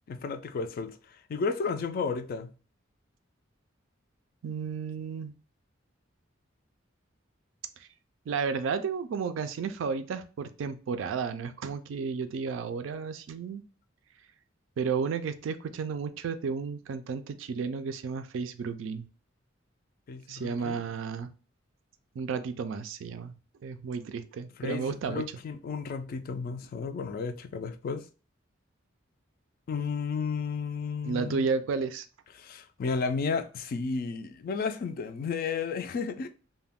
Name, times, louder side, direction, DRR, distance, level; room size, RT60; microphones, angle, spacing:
voice 1, 0.1-2.5 20.1-20.8 24.6-28.0 29.7-31.5 32.3-36.3, left 5 dB, 50° left, 0.3 m, -33 dB
voice 2, 4.4-5.3 8.3-13.6 14.8-19.1 20.3-21.3 22.2-23.3 23.6-25.2 31.0-32.0, right 5 dB, 70° right, 0.3 m, -32 dB
2.3 x 2.1 x 3.4 m
head